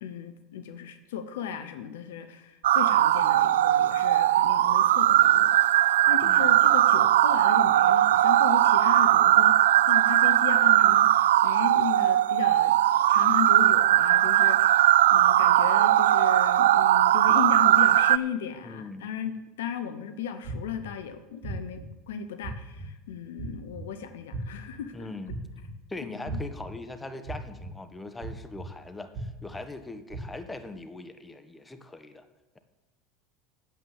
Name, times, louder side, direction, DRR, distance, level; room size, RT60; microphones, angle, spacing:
voice 1, 0.0-12.8 13.1-24.9 26.1-26.4, left 8 dB, 75° left, 10 dB, 0.9 m, -36 dB
sound 1, 2.6-18.2, right 13 dB, 75° right, 0.3 m, -20 dB
voice 2, 6.2-6.6 18.6-19.1 24.9-25.4 25.9-32.3, left 2 dB, 15° left, 8 dB, 1.2 m, -41 dB
sound 2, 20.4-20.9 21.4-21.8 22.4-22.9 23.4-23.8 24.3-24.7 25.3-25.7 26.3-26.7 27.3-27.7 28.2-28.7 29.1-29.5 30.1-30.2, right 3 dB, 55° right, 2.6 m, -36 dB
9.0 x 8.0 x 7.3 m, 1.0 s
hypercardioid pair, 75°, 0 cm